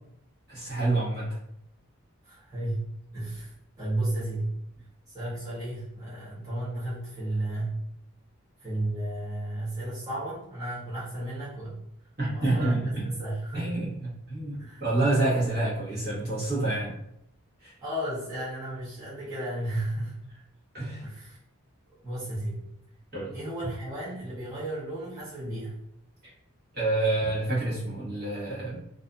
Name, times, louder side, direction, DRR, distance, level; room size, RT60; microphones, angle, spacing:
voice 1, 0.5-1.3 12.2-13.1 13.5-16.9 17.6-17.7 20.7-21.0 23.1-23.4 26.7-28.8, right 2 dB, 45° right, -8 dB, 1.1 m, -28 dB
voice 2, 2.2-4.5 5.1-7.8 8.6-11.8 12.3-13.8 14.5-14.8 17.8-20.2 21.0-21.4 22.0-22.7 23.3-25.8, right 1 dB, 15° right, -12 dB, 0.9 m, -33 dB
2.6 x 2.5 x 2.3 m, 0.76 s
head